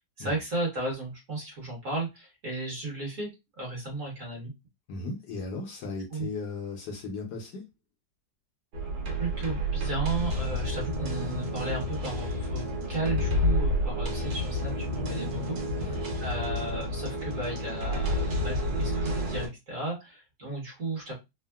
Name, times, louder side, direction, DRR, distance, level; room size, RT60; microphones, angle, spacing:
voice 1, 0.0-3.3 3.6-4.5 6.1-6.3 9.2-15.9 16.2-21.1, right 2 dB, 45° right, 1.5 m, -34 dB
voice 2, 4.9-7.7 15.8-16.0, left 3 dB, 70° left, 1.2 m, -36 dB
sound 1, 8.7-19.5, equal, 75° right, 1.5 m, -30 dB
3.6 x 2.1 x 2.2 m
omnidirectional pair, 2.1 m